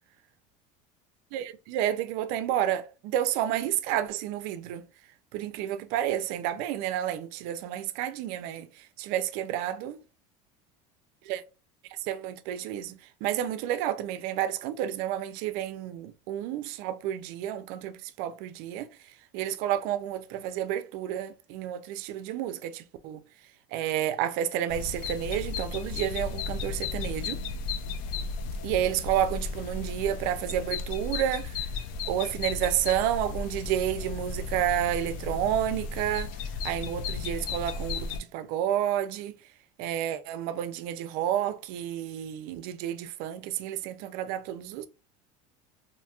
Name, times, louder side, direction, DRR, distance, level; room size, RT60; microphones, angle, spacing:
voice 1, 1.3-4.8 5.3-8.7 9.0-10.0 11.3-11.4 12.1-18.9 19.3-23.2 23.7-27.4 28.6-31.6 32.1-36.3 36.6-39.4 39.8-44.9, right 11 dB, 65° right, 0.4 m, -30 dB
sound 1, 24.7-38.2, left 4 dB, 60° left, 0.4 m, -35 dB
2.8 x 2.6 x 2.2 m
cardioid pair, 145°, 17 cm